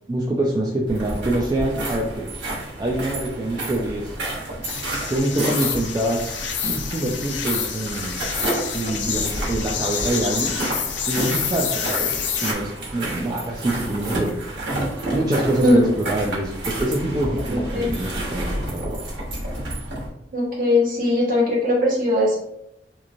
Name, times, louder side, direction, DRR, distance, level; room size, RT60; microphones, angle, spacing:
voice 1, 0.1-2.3 2.8-4.1 5.1-6.4 6.6-8.2 8.7-10.6 11.1-14.3 15.1-19.0, right 1 dB, 25° right, -2 dB, 0.3 m, -25 dB
sound 1, 0.9-20.1, right 1 dB, 85° right, 1.1 m, -30 dB
sound 2, 4.6-12.5, left 8 dB, 85° left, 0.4 m, -28 dB
voice 2, 17.5-17.9 20.3-22.4, left 1 dB, 50° right, -5 dB, 1.1 m, -19 dB
3.0 x 2.5 x 2.5 m, 0.80 s
head